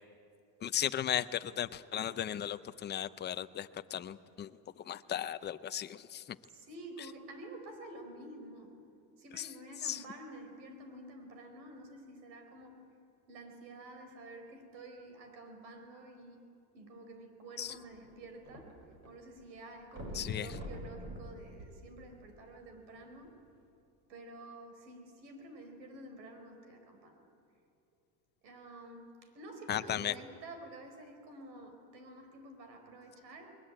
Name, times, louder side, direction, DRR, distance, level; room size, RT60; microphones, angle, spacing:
voice 1, 0.6-6.4 9.3-9.5 9.8-10.0 17.6-17.7 20.1-20.6 29.7-30.1, left 10 dB, 20° left, 11 dB, 0.6 m, -36 dB
voice 2, 6.5-8.7 9.2-12.8 13.3-16.4 16.7-18.7 19.1-23.4 24.1-27.2 28.4-33.5, right 2 dB, 85° right, 6 dB, 4.8 m, -50 dB
sound 1, 17.6-19.1 19.4-19.5 19.9-22.5 23.2-23.3, equal, 30° right, 6.5 m, -46 dB
21.0 x 20.5 x 8.9 m, 2.6 s
supercardioid pair, 110°, 50 cm